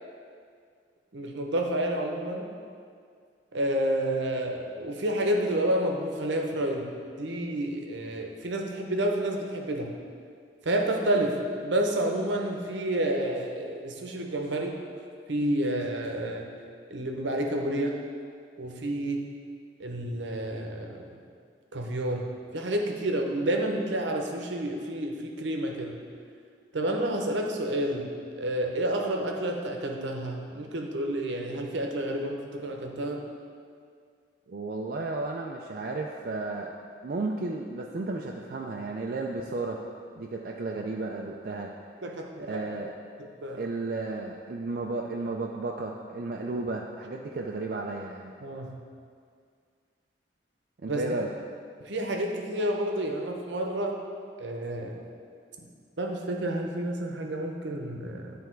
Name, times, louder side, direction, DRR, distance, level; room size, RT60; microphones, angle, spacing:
voice 1, 1.1-2.5 3.5-6.9 7.2-9.9 10.6-14.8 15.3-16.5 16.9-18.0 18.6-19.3 19.8-21.0 21.7-26.0 26.7-28.1 28.4-33.2 42.0-42.6 43.4-43.7 48.4-48.8 50.9-51.0 51.8-54.0 54.4-55.0 56.0-58.3, right 1 dB, 75° right, 2 dB, 0.8 m, -29 dB
voice 2, 34.5-36.7 37.0-39.8 40.2-41.7 42.4-42.9 43.5-48.3 50.8-51.3, right 3 dB, 50° right, 0 dB, 0.4 m, -33 dB
10.0 x 3.4 x 4.5 m, 2.2 s
head